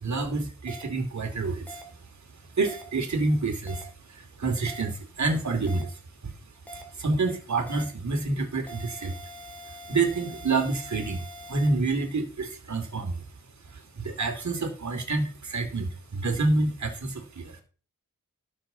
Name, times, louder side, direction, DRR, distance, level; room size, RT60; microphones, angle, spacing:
voice 1, 0.0-1.8 2.6-6.3 6.7-9.2 9.9-13.2 13.7-17.6, right 3 dB, 55° right, 5 dB, 2.6 m, -28 dB
sound 1, 0.7-0.8 1.7-1.8 2.7-2.8 3.7-3.8 4.7-4.8 5.7-5.8 6.7-6.8 7.7-7.8 8.7-11.7, equal, 5° left, 2.3 m, -43 dB
12.5 x 7.3 x 3.9 m, 0.39 s
wide cardioid pair, 80°, 33 cm